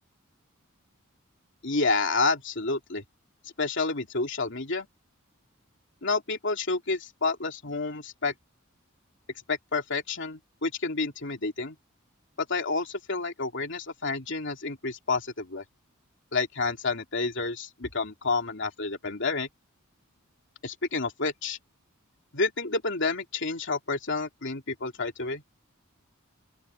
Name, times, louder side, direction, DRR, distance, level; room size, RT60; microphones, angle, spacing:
voice 1, 1.6-3.0 3.6-4.9 6.0-8.3 9.5-11.8 12.4-15.6 16.3-19.5 20.6-21.6 22.3-25.4, left 3 dB, 60° left, 3.1 m, -29 dB
open air
head